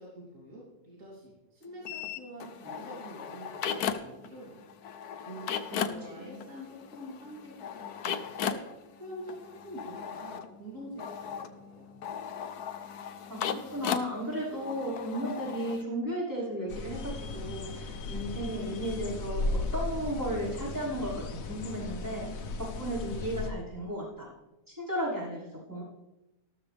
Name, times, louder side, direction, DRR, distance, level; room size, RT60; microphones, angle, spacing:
voice 1, 0.0-4.6 5.3-8.6 9.0-9.3 9.6-11.9, equal, 55° right, -6 dB, 3.7 m, -46 dB
sound 1, 1.8-4.3 4.5-15.8, left 8 dB, 85° left, 1.4 m, -37 dB
voice 2, 5.7-6.4 13.3-24.3 24.7-25.8, equal, 10° right, -8 dB, 5.5 m, -35 dB
sound 2, 16.7-23.5, left 2 dB, 65° left, 1.4 m, -36 dB
14.0 x 13.0 x 3.5 m, 1.0 s
omnidirectional pair, 1.6 m